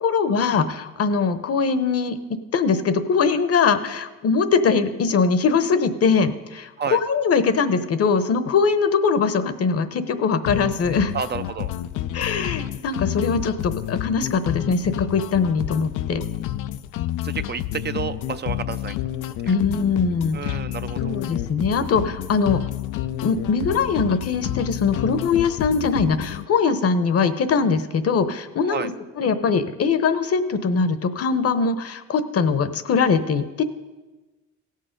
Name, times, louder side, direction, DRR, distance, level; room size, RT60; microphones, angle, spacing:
voice 1, 0.0-11.1 12.1-16.2 19.5-20.6 21.0-22.6 23.2-28.9 29.2-33.6, left 5 dB, 50° left, 12 dB, 0.9 m, -22 dB
sound 1, 10.5-26.5, left 13 dB, 85° left, 0.5 m, -29 dB
voice 2, 11.1-11.7 17.2-18.9 19.4-19.5 20.3-21.1 28.7-28.9, right 7 dB, 35° right, 11 dB, 0.4 m, -30 dB
17.0 x 6.6 x 5.2 m, 1.2 s
cardioid pair, 90°, 30 cm